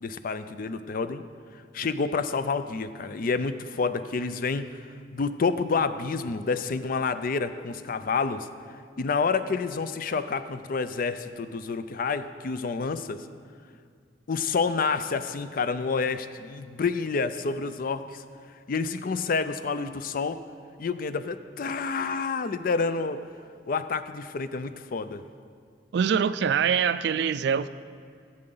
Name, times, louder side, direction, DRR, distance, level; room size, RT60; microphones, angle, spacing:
voice 1, 0.0-1.2 1.7-4.7 5.1-8.5 9.0-13.3 14.3-18.2 18.7-20.4 20.8-23.2 23.7-25.2, left 4 dB, 50° left, 12 dB, 0.5 m, -28 dB
voice 2, 25.9-27.7, right 7 dB, 65° right, 14 dB, 0.3 m, -24 dB
16.5 x 7.7 x 3.9 m, 2.1 s
head